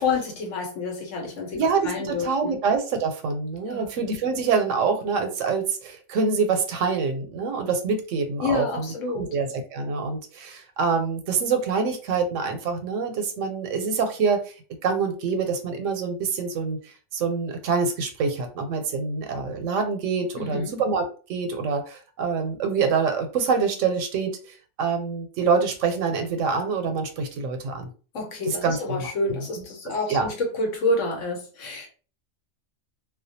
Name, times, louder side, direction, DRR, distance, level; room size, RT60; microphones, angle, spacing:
voice 1, 0.0-2.6 3.6-3.9 8.4-9.3 20.4-20.7 28.1-31.9, left 3 dB, 85° left, 1.1 m, -28 dB
voice 2, 1.5-8.9 9.2-14.5 14.8-21.0 21.3-27.9 28.5-29.6 30.1-30.3, right 5 dB, 90° right, 0.9 m, -26 dB
2.3 x 2.2 x 2.6 m
omnidirectional pair, 1.2 m